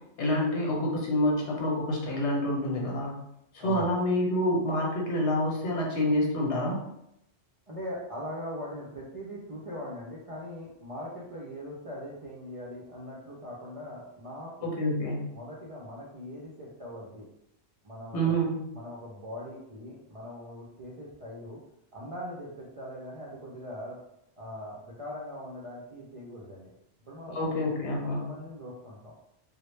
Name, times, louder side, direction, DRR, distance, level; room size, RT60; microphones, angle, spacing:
voice 1, 0.2-3.1 3.5-6.8 14.6-15.3 18.1-18.5 27.3-28.2, equal, 85° left, -2 dB, 1.0 m, -27 dB
voice 2, 3.6-3.9 7.7-14.7 15.3-17.3 17.8-18.4 18.7-21.6 21.9-24.0 24.4-26.7 27.0-27.5 28.0-29.1, equal, 60° right, -6 dB, 0.3 m, -41 dB
2.1 x 2.0 x 3.1 m, 0.81 s
omnidirectional pair, 1.2 m